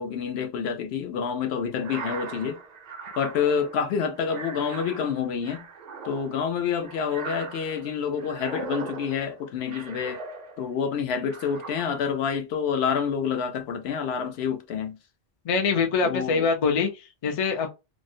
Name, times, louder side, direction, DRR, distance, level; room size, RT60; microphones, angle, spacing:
voice 1, 0.0-2.6 3.2-5.6 6.0-10.2 10.6-15.0 16.0-16.5, left 7 dB, 70° left, 0.8 m, -28 dB
sound 1, 1.7-10.8 11.2-12.2, right 4 dB, 55° right, 0.5 m, -40 dB
voice 2, 15.4-17.7, left 5 dB, 50° left, 0.4 m, -24 dB
2.4 x 2.0 x 2.5 m
omnidirectional pair, 1.1 m